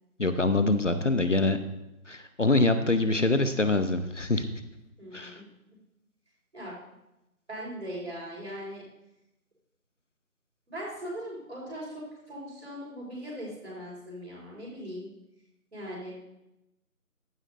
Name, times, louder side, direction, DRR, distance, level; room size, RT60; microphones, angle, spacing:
voice 1, 0.2-1.6 2.1-4.5 5.1-5.4, left 2 dB, 55° left, 10 dB, 0.8 m, -25 dB
voice 2, 5.0-5.4 6.5-6.8 7.5-8.8 10.7-15.1 15.7-16.2, equal, 50° right, -4 dB, 4.2 m, -39 dB
14.5 x 12.0 x 2.6 m, 0.91 s
figure-of-eight pair, 170°, 45 cm